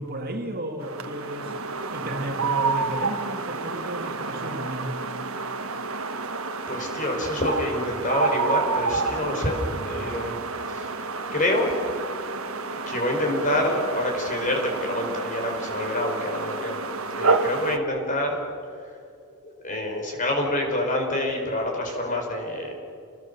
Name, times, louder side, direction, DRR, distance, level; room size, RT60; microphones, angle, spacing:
voice 1, 0.0-1.6 1.9-5.0, right 1 dB, 45° right, 3 dB, 2.4 m, -33 dB
sound 1, 0.8-17.8, right 4 dB, 65° right, 1.6 m, -29 dB
voice 2, 6.7-9.6 9.8-10.4 10.7-10.9 11.3-11.8 12.9-16.8 17.1-18.4 19.4-22.7, left 1 dB, 35° left, 2 dB, 5.0 m, -27 dB
29.0 x 20.5 x 7.0 m, 2.4 s
head